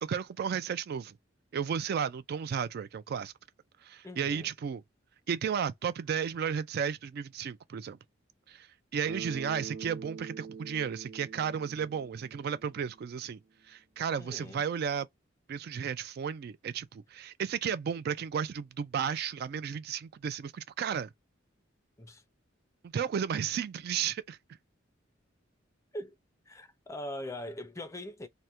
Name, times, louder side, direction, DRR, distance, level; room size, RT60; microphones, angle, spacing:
voice 1, 0.0-1.2 1.5-3.3 3.8-4.8 5.3-8.0 8.5-8.7 8.9-13.4 13.7-15.1 15.5-21.1 22.8-24.4, right 7 dB, 55° right, 0.3 m, -33 dB
voice 2, 4.0-4.5 14.2-14.6 22.0-22.2 25.9-26.1 26.5-28.3, left 1 dB, 15° left, 0.4 m, -41 dB
Bass guitar, 9.1-13.1, right 5 dB, 80° right, 0.8 m, -45 dB
3.3 x 2.1 x 2.9 m
head